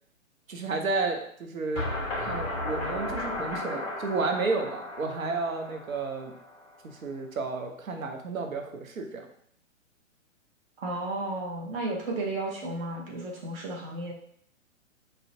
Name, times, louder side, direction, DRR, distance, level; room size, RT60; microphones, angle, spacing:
voice 1, 0.5-1.9 2.2-6.3 6.8-9.3, right 3 dB, 85° right, 4 dB, 0.6 m, -32 dB
sound 1, 1.8-6.7, left 1 dB, 20° left, 0.4 m, -34 dB
voice 2, 10.8-14.1, right 2 dB, 45° right, -1 dB, 0.6 m, -33 dB
2.4 x 2.1 x 2.6 m, 0.65 s
figure-of-eight pair, 125°, 40 cm